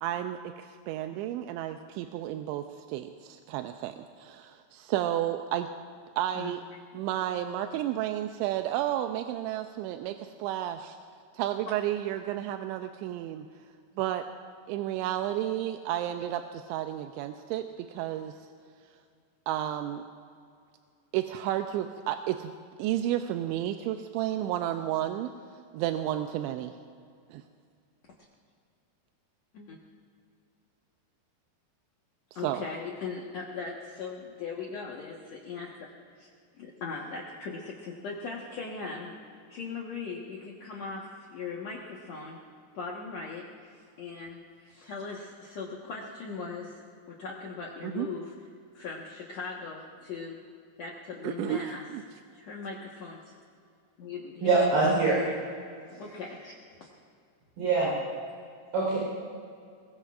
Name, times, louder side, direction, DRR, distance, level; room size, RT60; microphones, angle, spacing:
voice 1, 0.0-5.7 6.2-6.6 6.9-11.0 11.3-13.5 14.0-14.2 14.7-18.3 19.5-20.0 21.1-22.5 22.8-25.3 25.7-26.7 27.3-27.4 32.4-32.6 47.8-48.1 51.2-52.0, right 12 dB, 85° right, 6 dB, 2.9 m, -32 dB
voice 2, 32.3-35.7 36.2-39.1 39.5-42.4 42.7-46.8 47.1-48.3 48.7-50.4 50.8-51.8 52.3-53.3 54.0-54.5 56.0-56.5 56.8-56.9 57.8-57.9, left 4 dB, 75° left, -3 dB, 1.5 m, -39 dB
voice 3, 54.4-55.2 55.9-56.0 57.6-57.9 58.7-59.0, right 3 dB, 65° right, -6 dB, 6.2 m, -23 dB
23.5 x 21.5 x 2.5 m, 2.3 s
omnidirectional pair, 5.2 m